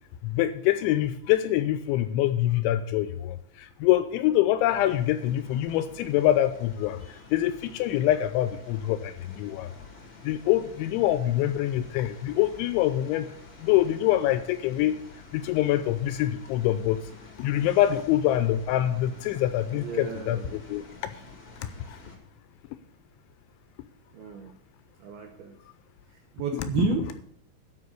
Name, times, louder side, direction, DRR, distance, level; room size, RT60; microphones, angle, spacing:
voice 1, 0.2-7.0 7.3-9.7 10.2-13.3 13.6-15.0 15.3-17.0 17.4-20.8 26.5-26.9, left 13 dB, 80° left, 11 dB, 2.8 m, -25 dB
sound 1, 4.7-22.2, left 3 dB, 65° left, 1.0 m, -48 dB
voice 2, 19.7-20.5 24.1-24.5 25.0-25.6 26.3-27.2, right 5 dB, 75° right, 3 dB, 2.4 m, -31 dB
12.0 x 5.4 x 8.1 m, 0.69 s
omnidirectional pair, 5.6 m